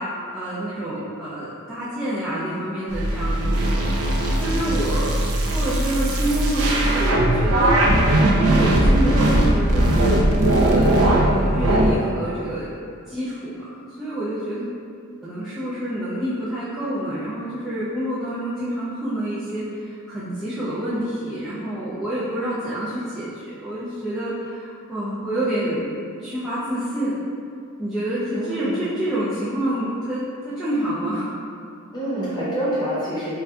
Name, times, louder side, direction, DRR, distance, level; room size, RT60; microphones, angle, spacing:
voice 1, 0.0-3.8 4.4-5.2 5.4-7.7 8.3-12.7 13.1-14.8 15.2-25.9 26.2-27.2 27.8-31.3, right 1 dB, 5° right, -13 dB, 0.3 m, -27 dB
sound 1, 2.9-11.9, right 1 dB, 75° right, 0.4 m, -19 dB
voice 2, 28.3-28.8 31.9-33.4, right 1 dB, 20° left, -9 dB, 0.8 m, -26 dB
2.6 x 2.2 x 3.3 m, 2.4 s
head